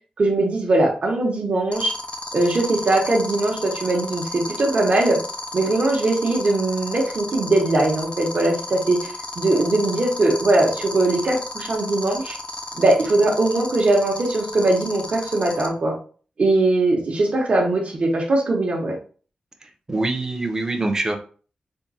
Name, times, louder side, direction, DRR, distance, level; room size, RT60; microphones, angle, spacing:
voice 1, 0.2-1.9 2.3-5.2 5.5-12.4 12.7-15.9 16.4-18.9, right 2 dB, 50° right, -1 dB, 0.9 m, -20 dB
sound 1, 1.7-15.7, left 3 dB, 45° left, 0.6 m, -32 dB
voice 2, 19.9-21.2, right 2 dB, 20° right, 3 dB, 0.7 m, -24 dB
3.6 x 2.3 x 4.1 m, 0.40 s
wide cardioid pair, 130°, 3 cm